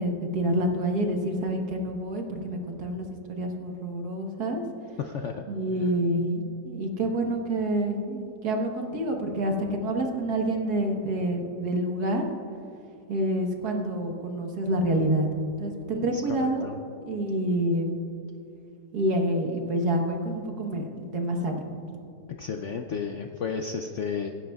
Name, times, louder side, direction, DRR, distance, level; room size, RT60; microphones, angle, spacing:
voice 1, 0.0-4.6 5.5-12.2 13.1-15.3 15.6-16.7 17.1-17.9 18.9-21.7, right 1 dB, 65° right, 2 dB, 1.8 m, -27 dB
voice 2, 5.0-5.4 5.8-5.9 16.1-16.8 22.4-24.3, left 6 dB, 65° left, 4 dB, 0.7 m, -33 dB
23.5 x 10.5 x 2.4 m, 2.7 s
omnidirectional pair, 1.8 m